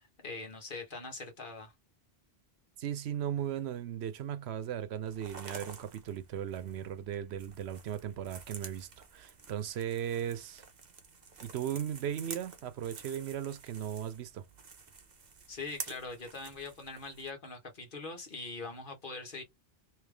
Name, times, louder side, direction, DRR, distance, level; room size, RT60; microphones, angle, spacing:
voice 1, 0.0-1.7 15.5-19.4, left 3 dB, 55° left, 1.5 m, -42 dB
voice 2, 2.8-10.7 11.4-14.4, right 10 dB, 90° right, 0.9 m, -37 dB
sound 1, 5.1-17.3, right 5 dB, 45° right, 0.9 m, -49 dB
3.3 x 3.1 x 3.4 m
omnidirectional pair, 1.1 m